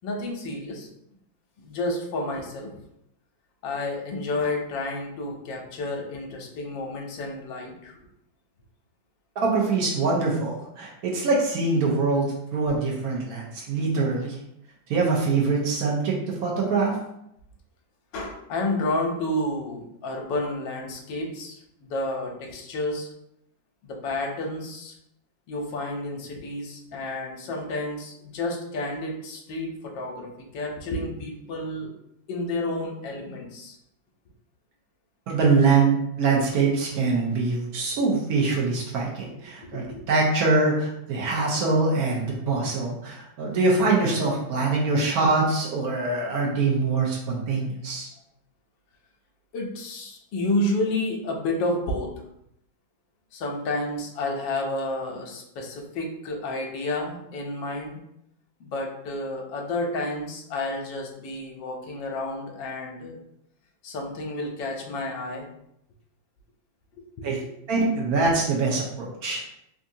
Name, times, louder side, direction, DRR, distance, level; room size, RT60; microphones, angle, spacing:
voice 1, 0.0-0.9 1.6-2.7 3.6-7.9 18.1-23.1 23.8-24.9 25.5-31.9 32.3-33.8 39.6-40.0 42.6-42.7 49.5-52.1 53.3-58.0 58.6-63.2 63.8-65.5, left 2 dB, 75° left, 1 dB, 1.3 m, -30 dB
voice 2, 9.4-14.3 14.9-17.0 35.3-48.1 67.2-67.4 67.7-69.5, right 3 dB, 60° right, -2 dB, 1.0 m, -24 dB
3.5 x 2.6 x 2.7 m, 0.77 s
omnidirectional pair, 2.1 m